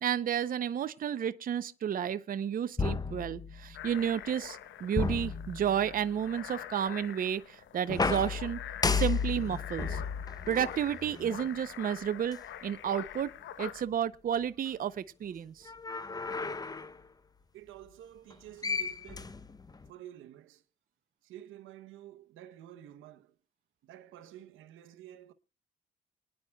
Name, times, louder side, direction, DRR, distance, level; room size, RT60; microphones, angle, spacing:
voice 1, 0.0-8.6 8.8-10.0 10.5-13.3 13.6-15.7, right 9 dB, 45° right, 0.6 m, -32 dB
sound 1, 2.8-3.9 4.9-6.1 7.9-11.5 12.3-12.4 15.6-17.0 18.3-18.4 18.6-19.9, left 4 dB, 20° left, 0.7 m, -33 dB
sound 2, 3.7-13.8, left 10 dB, 75° left, 0.9 m, -45 dB
voice 2, 17.5-19.4 19.9-20.6 21.2-23.3 23.8-25.3, right 12 dB, 85° right, 0.8 m, -50 dB
28.0 x 9.9 x 2.2 m
cardioid pair, 90°, 20 cm